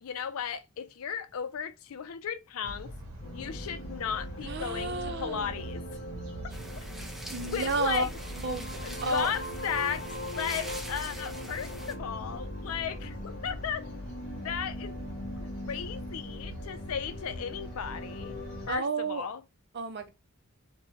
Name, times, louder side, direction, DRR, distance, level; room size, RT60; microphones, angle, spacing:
voice 1, 0.0-2.9 3.3-5.8 6.8-6.9 7.4-8.1 8.8-10.0 10.3-13.8 14.4-15.0 15.4-18.4 18.7-19.4, left 7 dB, 90° left, 0.4 m, -35 dB
sound 1, 2.6-18.8, equal, 85° right, 0.8 m, -43 dB
sound 2, 3.2-18.7, left 1 dB, 45° left, 0.7 m, -42 dB
voice 2, 4.4-5.5 7.3-8.1 8.4-9.3 18.7-19.2 19.7-20.1, right 2 dB, 50° right, 0.5 m, -31 dB
sound 3, 6.5-11.9, equal, ahead, 0.4 m, -44 dB
2.7 x 2.2 x 3.0 m
head